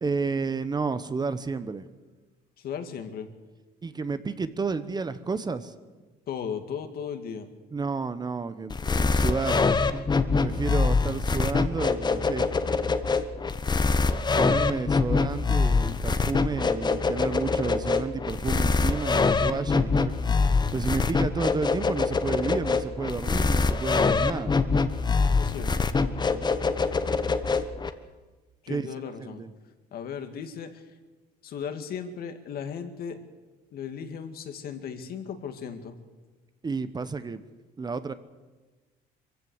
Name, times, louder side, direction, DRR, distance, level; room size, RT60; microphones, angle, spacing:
voice 1, 0.0-1.8 3.8-5.7 7.7-9.6 10.4-12.5 14.3-20.2 20.7-24.6 28.7-28.9 29.2-29.5 36.6-37.4 37.8-38.1, right 4 dB, 25° right, 12 dB, 1.0 m, -31 dB
voice 2, 2.6-3.3 6.3-7.5 25.4-26.5 28.6-29.4 29.9-30.9 31.4-33.2 33.7-36.0, left 7 dB, 65° left, 7 dB, 2.1 m, -36 dB
sound 1, 8.7-27.9, left 4 dB, 25° left, 1.1 m, -24 dB
22.5 x 15.5 x 8.0 m, 1.3 s
cardioid pair, 110°, 17 cm